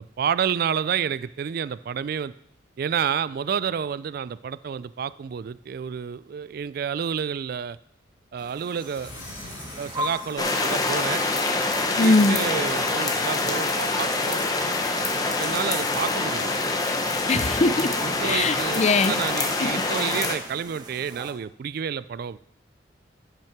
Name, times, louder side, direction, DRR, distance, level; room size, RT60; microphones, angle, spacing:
voice 1, 0.0-2.3 2.8-7.8 8.3-9.1 9.8-11.2 12.0-14.4 15.4-16.5 18.0-22.4, right 7 dB, 50° right, 18 dB, 0.3 m, -29 dB
sound 1, 8.4-21.3, equal, 25° right, 1.0 m, -41 dB
sound 2, 8.8-12.1, left 2 dB, 85° left, 2.8 m, -45 dB
sound 3, 10.4-20.3, left 3 dB, 20° left, 1.0 m, -25 dB
voice 2, 12.0-12.4 17.3-17.7 18.2-19.1 19.6-19.7, left 3 dB, 35° left, 13 dB, 0.5 m, -20 dB
10.5 x 5.7 x 5.9 m, 0.75 s
head